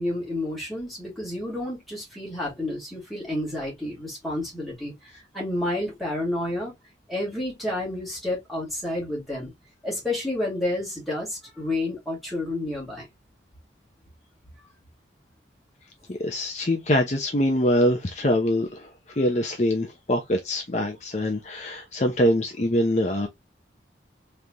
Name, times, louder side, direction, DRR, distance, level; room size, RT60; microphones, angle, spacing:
voice 1, 0.0-6.7 7.1-9.5 9.8-13.1, left 1 dB, ahead, 2.2 m, -30 dB
voice 2, 16.1-18.9 19.2-23.3, left 1 dB, 40° left, 0.7 m, -24 dB
3.7 x 3.3 x 2.8 m
head